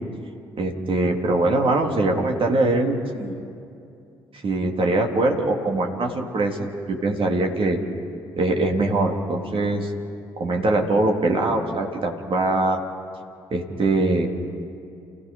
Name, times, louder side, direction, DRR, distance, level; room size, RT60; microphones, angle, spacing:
voice 1, 0.6-3.4 4.4-7.8 8.4-9.9 10.4-12.8 13.5-14.3, right 2 dB, 45° right, 1 dB, 3.3 m, -22 dB
29.5 x 16.5 x 5.5 m, 2.5 s
figure-of-eight pair, 45°, 13 cm